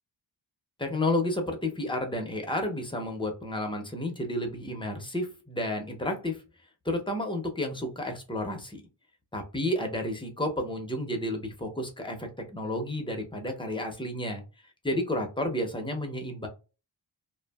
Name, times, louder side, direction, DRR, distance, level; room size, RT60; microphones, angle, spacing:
voice 1, 0.8-6.4 6.8-8.8 9.3-14.4 14.8-16.5, left 1 dB, 10° left, 3 dB, 0.5 m, -31 dB
2.6 x 2.4 x 2.2 m, 0.32 s
wide cardioid pair, 120°, 47 cm